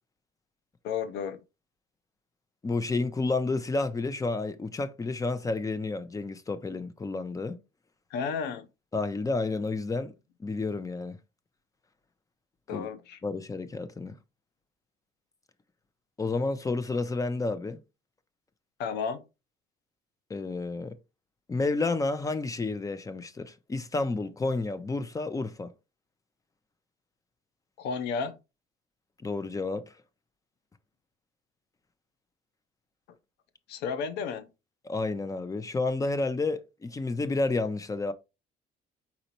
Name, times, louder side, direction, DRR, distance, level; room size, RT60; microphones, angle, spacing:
voice 1, 0.8-1.4 8.1-8.7 12.7-13.2 18.8-19.2 27.8-28.4 33.7-34.5, left 6 dB, 85° left, 0.7 m, -32 dB
voice 2, 2.6-7.6 8.9-10.1 10.4-11.2 12.7-12.9 13.2-14.2 16.2-17.8 20.3-21.0 21.5-25.7 29.2-29.9 34.8-38.1, left 3 dB, 20° left, 0.6 m, -30 dB
4.2 x 4.1 x 2.9 m
cardioid pair, 110°, 17 cm